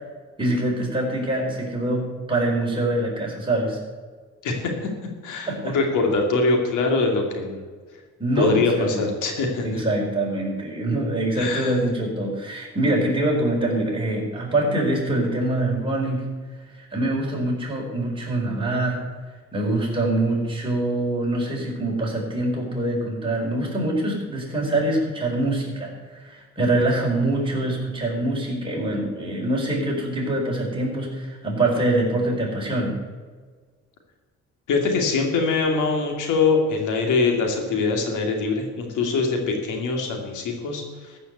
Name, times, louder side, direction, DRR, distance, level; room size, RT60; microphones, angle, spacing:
voice 1, 0.4-3.8 5.5-5.8 8.2-9.1 9.6-16.3 16.8-19.0 19.5-33.0, right 1 dB, 15° right, -3 dB, 4.6 m, -24 dB
voice 2, 5.2-7.6 8.4-9.8 11.4-11.8 34.7-41.2, left 4 dB, 85° left, 2 dB, 2.6 m, -23 dB
14.0 x 5.8 x 8.0 m, 1.5 s
cardioid pair, 90°, 30 cm